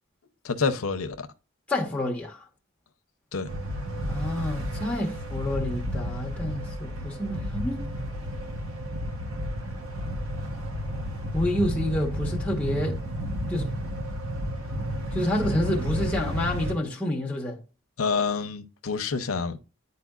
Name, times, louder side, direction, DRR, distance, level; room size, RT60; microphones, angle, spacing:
voice 1, 0.4-1.3 3.3-3.5 18.0-19.6, left 5 dB, 90° left, 0.7 m, -27 dB
voice 2, 1.7-2.4 4.1-7.8 11.3-13.0 13.5-13.7 15.1-17.6, left 1 dB, 5° left, 1.2 m, -28 dB
sound 1, 3.5-16.7, equal, 85° right, 1.1 m, -32 dB
10.5 x 4.3 x 2.4 m
head